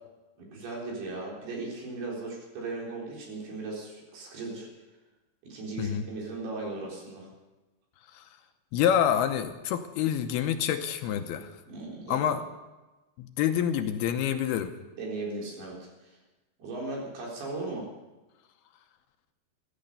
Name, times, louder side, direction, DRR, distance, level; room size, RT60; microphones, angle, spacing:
voice 1, 0.4-4.7 5.4-7.3 11.7-12.4 14.9-16.2 16.6-17.9, right 3 dB, 70° right, -2 dB, 5.9 m, -37 dB
voice 2, 8.7-11.5 12.1-12.4 13.2-14.7, left 9 dB, 80° left, 8 dB, 2.6 m, -27 dB
14.5 x 14.0 x 6.7 m, 1.1 s
omnidirectional pair, 4.8 m